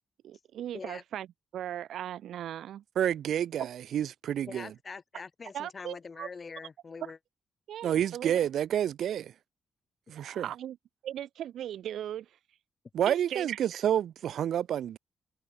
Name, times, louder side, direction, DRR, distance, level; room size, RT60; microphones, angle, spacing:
voice 1, 0.2-1.3 1.5-2.8 3.6-3.7 5.5-6.3 7.7-8.4 10.2-10.8 11.0-12.3 13.1-13.6, right 11 dB, 85° right, 0.6 m, -38 dB
voice 2, 3.0-4.7 7.8-9.3 10.1-10.5 12.9-15.0, right 10 dB, 70° right, 1.1 m, -29 dB
voice 3, 4.5-7.2, left 5 dB, 30° left, 3.2 m, -43 dB
wide cardioid pair, 160°, 0 cm